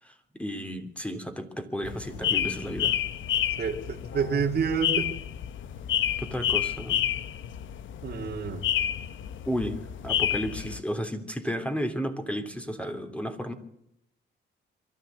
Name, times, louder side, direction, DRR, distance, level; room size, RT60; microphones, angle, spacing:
voice 1, 0.0-3.0 6.2-7.1 9.5-13.5, equal, 5° left, 7 dB, 3.2 m, -33 dB
sound 1, 1.8-10.8, left 10 dB, 75° left, 1.2 m, -30 dB
voice 2, 3.6-5.1 8.0-8.7, right 6 dB, 55° right, -1 dB, 2.4 m, -28 dB
23.5 x 13.5 x 8.3 m, 0.77 s
cardioid pair, 90°, 20 cm